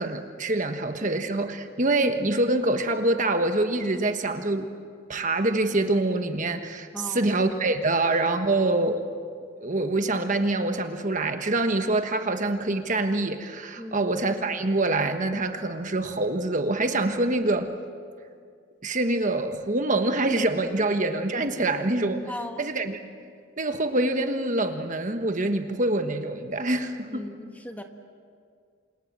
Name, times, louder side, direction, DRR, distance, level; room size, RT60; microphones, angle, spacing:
voice 1, 0.0-4.7 5.1-9.0 9.6-17.7 18.8-22.3 22.6-23.3 23.6-27.2, right 2 dB, 35° right, 7 dB, 1.3 m, -25 dB
voice 2, 6.9-7.3 13.8-14.1 22.3-22.6 27.1-27.8, left 1 dB, 5° left, 5 dB, 1.3 m, -37 dB
29.0 x 26.5 x 7.5 m, 2.1 s
head